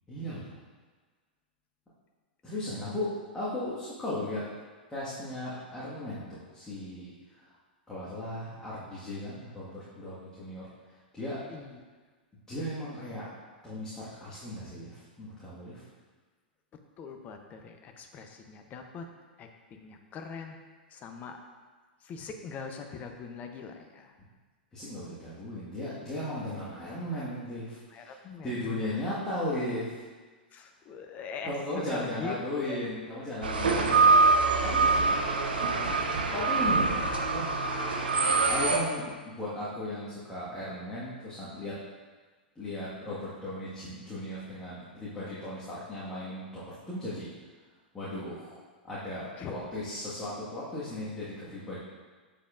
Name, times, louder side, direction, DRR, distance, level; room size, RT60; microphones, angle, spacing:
voice 1, 0.1-0.5 2.4-4.4 4.9-7.1 7.9-10.7 11.1-11.4 12.5-13.2 13.6-15.8 24.7-28.1 28.4-29.9 31.4-34.9 36.3-37.6 38.5-41.7 42.5-47.3 47.9-48.6 48.8-51.8, left 1 dB, 10° left, -10 dB, 1.7 m, -36 dB
voice 2, 11.5-11.8 17.0-19.1 19.4-20.6 20.9-21.4 22.0-24.1 27.9-28.9 30.5-32.8 34.8-35.2 35.6-36.5 49.4-49.6, left 5 dB, 30° left, 5 dB, 0.7 m, -42 dB
sound 1, 33.4-38.8, right 4 dB, 75° right, 0.8 m, -24 dB
7.2 x 6.7 x 2.5 m, 1.4 s
figure-of-eight pair, 100°, 5 cm